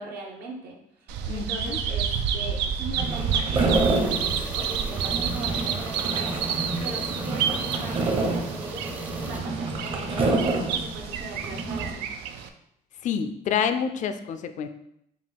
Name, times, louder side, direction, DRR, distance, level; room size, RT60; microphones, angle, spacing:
voice 1, 0.0-12.1, right 2 dB, 70° right, -1 dB, 1.0 m, -40 dB
Bird vocalization bird call bird song, 1.1-12.5, right 7 dB, 85° right, 0.4 m, -30 dB
voice 2, 1.3-1.8 13.0-14.7, left 7 dB, 50° left, 9 dB, 0.4 m, -28 dB
sound 1, 3.0-11.9, right 2 dB, 35° right, 0.8 m, -28 dB
sound 2, 3.7-9.4, right 1 dB, 10° right, 0.5 m, -38 dB
5.2 x 2.4 x 3.4 m, 0.75 s
cardioid pair, 110°, 17 cm